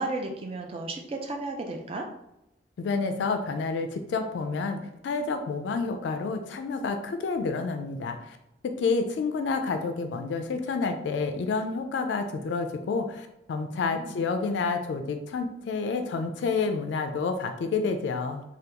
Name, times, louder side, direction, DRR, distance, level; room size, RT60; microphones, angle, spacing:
voice 1, 0.0-2.1 13.7-14.2, right 2 dB, 30° right, 3 dB, 0.3 m, -34 dB
voice 2, 2.8-8.4 8.8-18.4, left 4 dB, 70° left, 7 dB, 0.3 m, -29 dB
3.4 x 2.2 x 2.8 m, 0.87 s
head